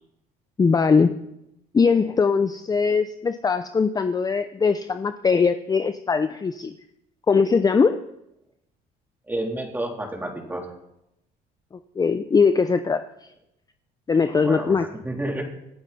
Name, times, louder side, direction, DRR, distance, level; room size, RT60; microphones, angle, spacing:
voice 1, 0.6-1.2 1.7-6.7 7.3-8.0 12.0-13.0 14.1-14.8, left 5 dB, 20° left, 10 dB, 0.6 m, -20 dB
voice 2, 9.3-10.7 14.4-15.4, right 1 dB, 10° right, 0 dB, 3.5 m, -30 dB
27.0 x 9.2 x 4.2 m, 0.84 s
cardioid pair, 110°, 17 cm